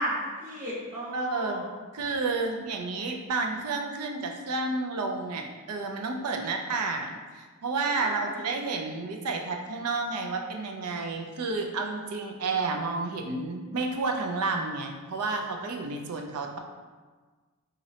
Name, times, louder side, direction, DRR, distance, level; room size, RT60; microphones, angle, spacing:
voice 1, 0.0-1.7 8.0-8.5, equal, 35° right, -7 dB, 1.1 m, -34 dB
voice 2, 1.1-1.6 1.9-16.6, right 3 dB, 85° right, 3 dB, 0.5 m, -31 dB
3.8 x 3.1 x 2.8 m, 1.4 s
head